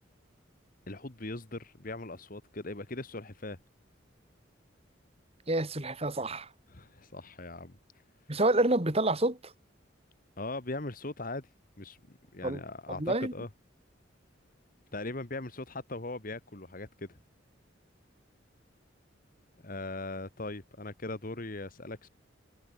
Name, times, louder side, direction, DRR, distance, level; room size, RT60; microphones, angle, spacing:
voice 1, 0.9-3.6 6.7-7.8 10.4-11.5 11.8-13.5 14.9-17.2 19.6-22.1, left 2 dB, 45° left, 1.7 m, -39 dB
voice 2, 5.5-6.5 8.3-9.5 12.4-12.6 13.0-13.3, right 2 dB, 30° right, 2.7 m, -28 dB
head